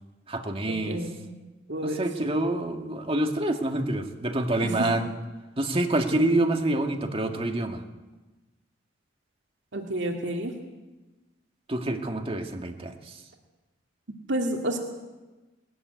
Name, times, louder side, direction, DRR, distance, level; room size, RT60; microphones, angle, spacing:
voice 1, 0.3-1.0 1.8-5.1 5.6-7.8 11.7-12.9, right 1 dB, 30° right, 4 dB, 2.0 m, -27 dB
voice 2, 0.9-1.2 1.7-2.0 4.6-4.7 9.7-10.5 14.3-14.8, right 1 dB, 70° right, 2 dB, 2.2 m, -29 dB
20.0 x 14.5 x 9.5 m, 1.2 s
head